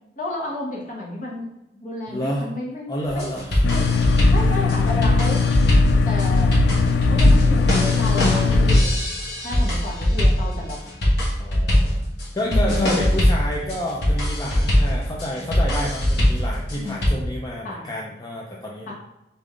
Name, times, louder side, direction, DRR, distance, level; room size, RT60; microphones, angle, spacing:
voice 1, 0.2-1.5 1.8-3.3 3.6-3.9 4.3-5.5 6.0-6.6 7.1-9.0 9.4-10.8 12.4-13.0 16.7-17.1 17.6-17.9 18.9-19.0, left 2 dB, 45° left, -2 dB, 1.2 m, -31 dB
voice 2, 2.1-2.4 2.9-4.1 11.4-12.1 12.3-18.9, equal, 20° left, -3 dB, 0.4 m, -30 dB
sound 1, 3.1-17.1, equal, 65° left, 1.4 m, -21 dB
sound 2, 3.6-8.8, left 4 dB, 85° left, 0.4 m, -19 dB
3.9 x 3.7 x 3.6 m, 0.92 s
head